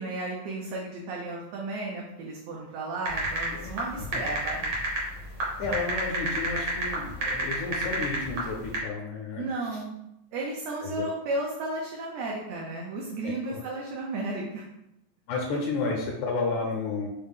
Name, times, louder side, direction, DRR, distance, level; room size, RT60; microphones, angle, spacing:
voice 1, 0.0-4.6 9.3-10.0 10.3-14.6, right 2 dB, 80° right, -2 dB, 1.6 m, -33 dB
sound 1, 3.1-8.8, right 2 dB, 60° right, 1.3 m, -29 dB
voice 2, 3.5-4.3 5.6-9.8 10.8-11.1 13.2-13.8 15.3-17.1, left 3 dB, 80° left, -1 dB, 2.0 m, -32 dB
5.6 x 2.0 x 3.5 m, 0.88 s
omnidirectional pair, 3.5 m